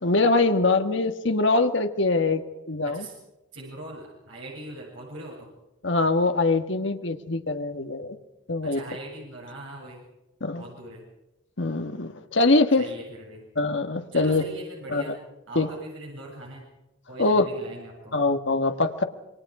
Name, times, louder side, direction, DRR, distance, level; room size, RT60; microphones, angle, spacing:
voice 1, 0.0-2.4 2.7-3.1 5.8-8.2 8.5-8.8 10.4-10.6 11.6-12.9 13.5-14.4 14.9-15.1 15.5-15.7 17.2-17.5 18.1-19.0, left 3 dB, 70° left, 7 dB, 1.7 m, -23 dB
voice 2, 2.8-3.2 3.5-5.5 8.6-10.0 10.6-11.0 12.8-13.4 14.1-15.2 15.5-16.7 17.1-18.2, right 1 dB, 75° right, -2 dB, 7.8 m, -40 dB
27.5 x 23.5 x 5.0 m, 0.97 s
head